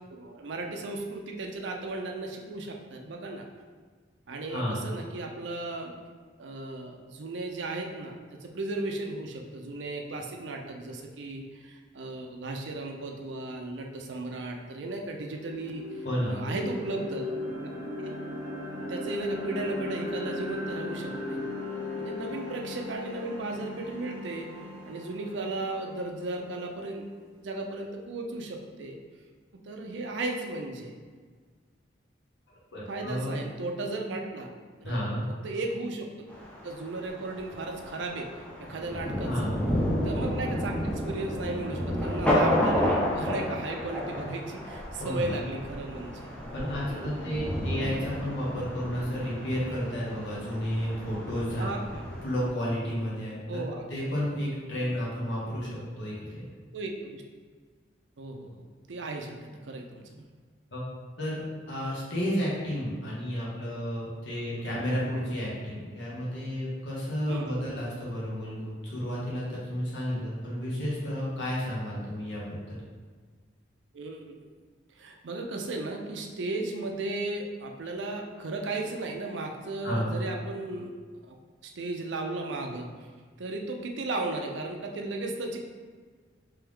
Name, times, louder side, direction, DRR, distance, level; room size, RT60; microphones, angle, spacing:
voice 1, 0.1-3.5 4.3-5.9 6.4-8.1 8.4-17.3 17.6-17.7 18.9-21.4 22.0-24.5 24.8-27.1 27.3-29.0 29.7-30.9 32.9-34.5 34.8-35.0 35.4-36.3 36.6-39.5 40.0-46.3 46.9-47.2 51.6-52.0 53.5-53.8 54.8-55.0 56.7-57.2 58.2-60.2 64.5-64.6 67.3-67.6 73.9-74.4 75.0-80.9 81.3-81.4 81.6-82.9 83.4-85.6, right 2 dB, 75° right, 2 dB, 0.5 m, -35 dB
voice 2, 4.5-4.8 16.0-16.4 32.7-33.3 34.8-35.2 39.2-39.5 45.0-45.3 46.5-51.7 52.2-53.6 53.9-56.4 60.7-60.8 61.2-61.4 61.7-72.8 79.8-80.1, equal, 75° left, -6 dB, 1.3 m, -32 dB
sound 1, 14.4-14.5 14.9-27.0, left 2 dB, 45° left, 1.2 m, -37 dB
Thunder, 36.3-52.5, equal, 5° left, 0.6 m, -31 dB
3.4 x 3.4 x 3.5 m, 1.5 s
head